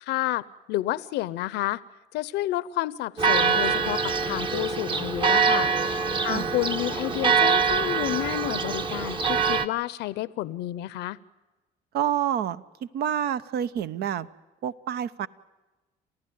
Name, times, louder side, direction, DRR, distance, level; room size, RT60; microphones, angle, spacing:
voice 1, 0.0-1.8 2.1-11.2, left 16 dB, 85° left, 18 dB, 0.7 m, -30 dB
Church bell, 3.2-9.7, right 5 dB, 30° right, 1.1 m, -24 dB
voice 2, 11.9-14.3 14.6-15.3, right 9 dB, 70° right, 14 dB, 1.0 m, -28 dB
28.5 x 15.0 x 9.3 m, 1.1 s
cardioid pair, 110°, 17 cm